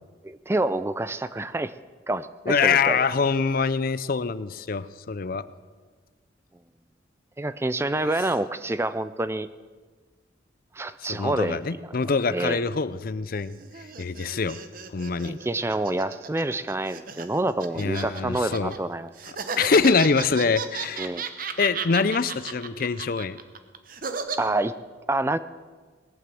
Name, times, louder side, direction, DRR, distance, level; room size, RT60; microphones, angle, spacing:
voice 1, 0.2-1.7 2.1-3.0 7.4-9.5 10.7-12.0 12.3-12.6 15.2-19.1 21.0-21.2 24.4-24.7 25.1-25.4, right 2 dB, 15° right, 14 dB, 0.3 m, -27 dB
voice 2, 2.5-5.4 11.1-14.6 14.9-15.4 17.8-18.7 19.6-21.1 21.6-23.4, left 5 dB, 50° left, 15 dB, 0.5 m, -24 dB
sound 1, 13.4-18.8 19.2-24.4, right 5 dB, 45° right, 1.0 m, -34 dB
19.0 x 8.9 x 7.7 m, 1.4 s
head